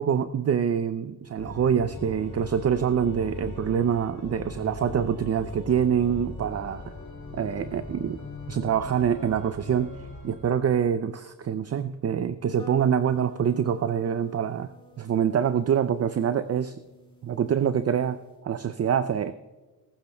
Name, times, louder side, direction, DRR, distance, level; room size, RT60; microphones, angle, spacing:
voice 1, 0.0-6.9 7.3-8.2 8.5-9.9 10.2-14.7 15.0-16.8 17.2-19.3, right 8 dB, 40° right, 12 dB, 0.5 m, -25 dB
Organ, 1.3-10.6, left 3 dB, 40° left, 2.2 m, -40 dB
sound 1, 12.6-18.4, equal, 10° left, 2.2 m, -50 dB
21.0 x 13.0 x 2.2 m, 1.2 s
cardioid pair, 85°, 40 cm